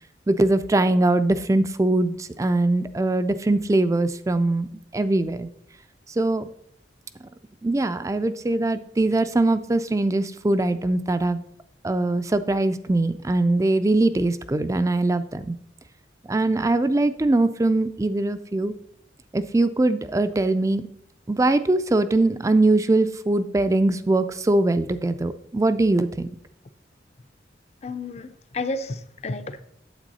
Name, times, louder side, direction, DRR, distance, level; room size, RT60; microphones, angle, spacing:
voice 1, 0.3-5.5 6.1-6.5 7.6-11.4 11.8-15.6 16.3-18.7 19.3-20.9 21.3-26.3, right 2 dB, 15° right, 0.3 m, -22 dB
voice 2, 27.8-29.6, left 2 dB, 35° left, 0.5 m, -31 dB
8.9 x 8.0 x 4.1 m
head